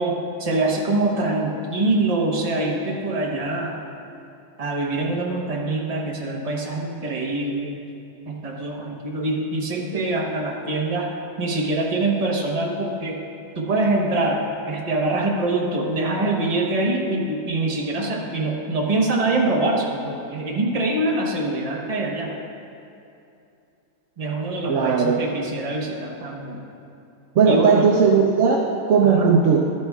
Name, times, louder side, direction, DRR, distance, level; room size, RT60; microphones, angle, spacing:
voice 1, 0.0-3.8 4.6-7.8 8.3-11.1 11.4-13.2 13.6-22.3 24.2-26.6 27.5-27.9 29.0-29.3, right 2 dB, 30° right, -1 dB, 0.8 m, -24 dB
voice 2, 24.7-25.2 27.4-29.6, right 5 dB, 70° right, 0 dB, 0.7 m, -17 dB
12.5 x 9.7 x 2.3 m, 2.7 s
omnidirectional pair, 1.9 m